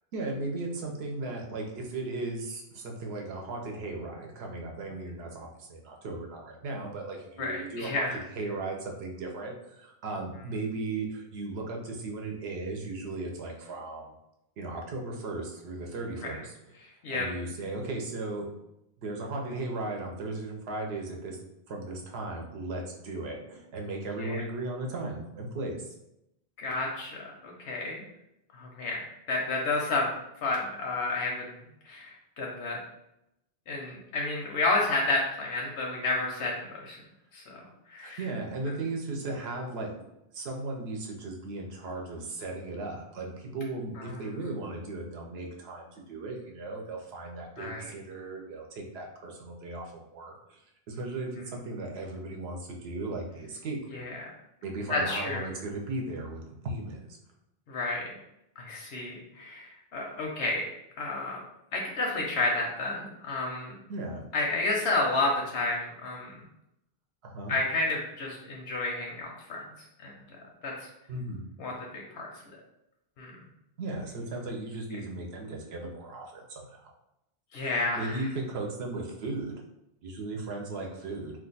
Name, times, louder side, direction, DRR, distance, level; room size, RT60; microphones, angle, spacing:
voice 1, 0.1-8.1 8.3-14.1 14.6-16.5 17.1-18.5 19.0-21.4 21.7-25.9 38.0-39.9 40.3-50.6 50.9-54.0 54.6-57.2 63.9-64.3 67.2-67.6 71.1-71.4 73.8-76.9 77.6-79.5 80.0-81.3, right 2 dB, 75° right, 1 dB, 0.9 m, -36 dB
voice 2, 7.4-8.2 16.2-16.3 17.0-17.3 24.1-24.4 26.6-28.0 28.5-29.0 29.3-30.1 30.4-31.5 31.9-32.8 33.7-37.0 37.3-37.6 37.9-38.2 44.0-44.2 47.6-47.9 53.9-54.2 54.9-55.5 57.7-58.1 58.6-60.6 61.0-61.4 61.7-63.7 64.3-66.3 67.5-69.6 70.0-70.1 70.6-70.9 71.6-72.3 73.2-73.3 77.5-78.3, left 2 dB, 85° left, -2 dB, 0.8 m, -31 dB
2.5 x 2.3 x 3.9 m, 0.85 s
omnidirectional pair, 1.1 m